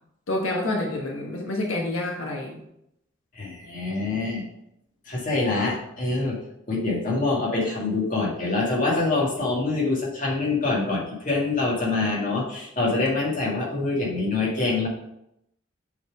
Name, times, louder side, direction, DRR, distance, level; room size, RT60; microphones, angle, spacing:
voice 1, 0.3-2.6, left 1 dB, 80° left, -1 dB, 1.3 m, -28 dB
voice 2, 3.3-4.4 5.1-6.4 6.7-14.9, left 3 dB, 40° left, -4 dB, 2.0 m, -25 dB
7.0 x 4.2 x 4.8 m, 0.80 s
head